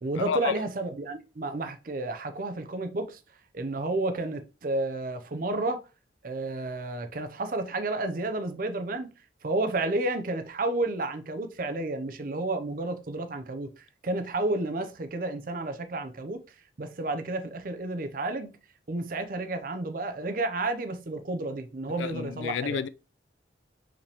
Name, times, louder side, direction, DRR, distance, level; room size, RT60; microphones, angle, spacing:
voice 1, 0.0-3.2 3.5-5.8 6.2-9.1 9.4-16.4 16.8-18.5 18.9-22.8, right 2 dB, 50° right, 0.5 m, -31 dB
voice 2, 22.0-22.9, left 7 dB, 80° left, 0.3 m, -30 dB
4.9 x 3.4 x 2.9 m
head